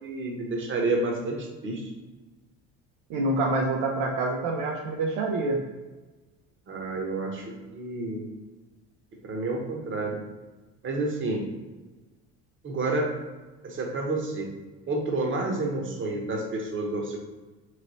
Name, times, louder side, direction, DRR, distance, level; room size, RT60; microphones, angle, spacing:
voice 1, 0.0-1.9 6.7-7.4 7.7-8.3 9.2-10.2 10.8-11.4 12.6-13.1 13.6-14.5 14.9-17.2, right 2 dB, 35° right, 1 dB, 0.9 m, -29 dB
voice 2, 3.1-5.6, right 2 dB, 75° right, 1 dB, 0.6 m, -26 dB
3.2 x 2.9 x 4.0 m, 1.2 s
supercardioid pair, 100°, 33 cm